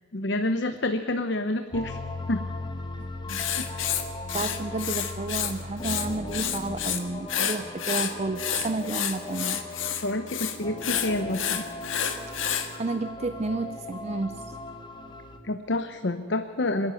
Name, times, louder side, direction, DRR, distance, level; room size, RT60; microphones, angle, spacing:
voice 1, 0.1-2.0 2.3-2.5 3.6-3.7 10.0-11.6 15.4-16.9, left 2 dB, 60° left, 8 dB, 0.8 m, -28 dB
sound 1, 1.7-15.4, left 2 dB, 25° left, 1.2 m, -38 dB
Writing, 3.3-5.5 5.8-7.0 7.3-12.7, left 9 dB, 85° left, 1.7 m, -29 dB
voice 2, 4.3-9.6 12.3-14.6, right 3 dB, 35° right, 12 dB, 0.4 m, -31 dB
26.0 x 10.5 x 9.3 m, 2.3 s
head